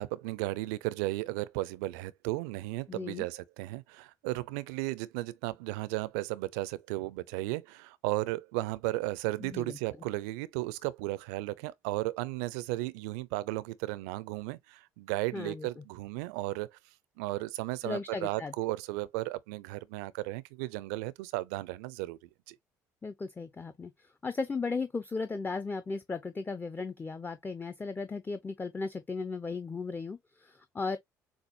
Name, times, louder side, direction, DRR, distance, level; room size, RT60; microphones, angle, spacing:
voice 1, 0.0-16.8 17.2-22.2 22.5-22.6, right 19 dB, 70° right, 0.5 m, -35 dB
voice 2, 2.9-3.3 9.4-9.8 15.3-15.7 17.8-18.5 23.0-31.0, left 4 dB, 20° left, 0.7 m, -36 dB
7.1 x 2.5 x 2.8 m
hypercardioid pair, 55°, 9 cm